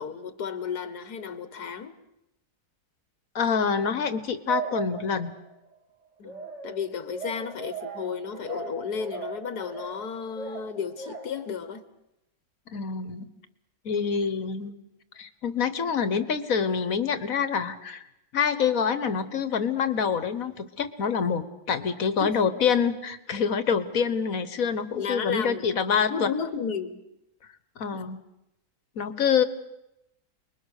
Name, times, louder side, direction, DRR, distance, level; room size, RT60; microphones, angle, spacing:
voice 1, 0.0-1.9 6.2-11.8 22.2-22.4 24.9-25.7 26.1-27.0 27.9-28.1, left 6 dB, 90° left, 12 dB, 1.7 m, -33 dB
voice 2, 3.4-5.3 12.7-13.3 13.9-14.8 15.2-18.1 18.3-26.3 27.8-28.2 29.0-29.4, left 6 dB, 65° left, 12 dB, 1.7 m, -26 dB
sound 1, 4.5-5.5 6.2-11.5, right 5 dB, 45° right, 2.6 m, -38 dB
29.5 x 21.5 x 6.6 m, 0.88 s
omnidirectional pair, 1.6 m